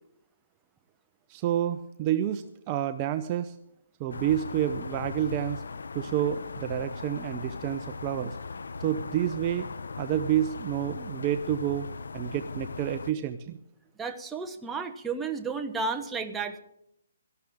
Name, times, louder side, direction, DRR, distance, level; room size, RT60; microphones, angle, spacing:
voice 1, 1.3-3.6 4.0-5.6 5.9-8.4 8.8-9.7 10.0-11.9 12.1-13.6, right 11 dB, 30° right, 9 dB, 0.7 m, -29 dB
sound 1, 4.1-13.1, left 4 dB, 85° left, 0.7 m, -38 dB
voice 2, 14.0-16.6, right 4 dB, 10° right, 4 dB, 1.1 m, -32 dB
17.5 x 14.5 x 3.7 m, 0.79 s
hypercardioid pair, 155°, 0 cm